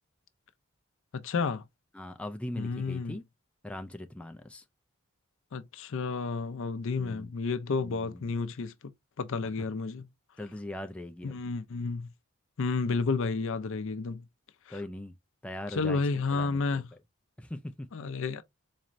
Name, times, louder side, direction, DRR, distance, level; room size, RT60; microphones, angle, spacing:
voice 1, 1.1-1.6 2.6-3.2 5.5-8.9 9.2-10.0 11.2-12.1 12.6-14.3 14.7-14.8 15.7-16.8 17.9-18.4, left 4 dB, 65° left, 0.5 m, -31 dB
voice 2, 1.9-3.2 3.6-4.6 7.0-7.3 7.8-8.3 10.4-11.4 14.7-15.1 15.4-16.0 16.3-16.8 17.4-17.9, left 1 dB, 5° left, 0.3 m, -40 dB
4.1 x 3.1 x 2.5 m
head